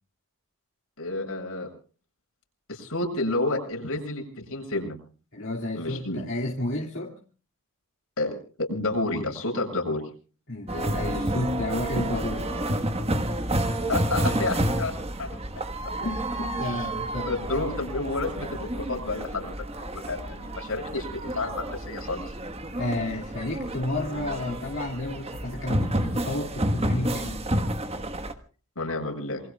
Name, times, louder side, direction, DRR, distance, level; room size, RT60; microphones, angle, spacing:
voice 1, 1.0-1.7 2.7-5.0 5.8-6.2 8.2-10.0 13.9-14.9 15.2-15.3 16.6-16.9 17.2-19.5 19.9-22.3 28.8-29.4, left 2 dB, 90° left, 1 dB, 7.4 m, -30 dB
voice 2, 5.3-7.1 10.5-12.8 16.0-17.4 22.8-27.5, left 2 dB, 60° left, 0 dB, 2.6 m, -31 dB
sound 1, 10.7-28.3, right 1 dB, 25° right, 1.3 m, -30 dB
27.5 x 22.5 x 2.3 m, 0.40 s
head